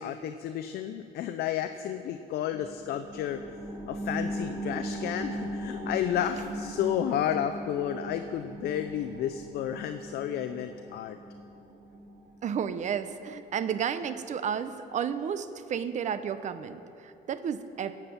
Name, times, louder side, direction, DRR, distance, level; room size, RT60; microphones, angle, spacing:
voice 1, 0.0-3.4 3.9-11.2, left 10 dB, 70° left, 8 dB, 0.5 m, -32 dB
sound 1, 2.5-13.6 14.0-14.1, right 1 dB, 20° right, 2.7 m, -39 dB
voice 2, 12.4-18.0, right 8 dB, 45° right, 12 dB, 0.7 m, -32 dB
17.5 x 5.8 x 7.3 m, 2.7 s
cardioid pair, 110°, 17 cm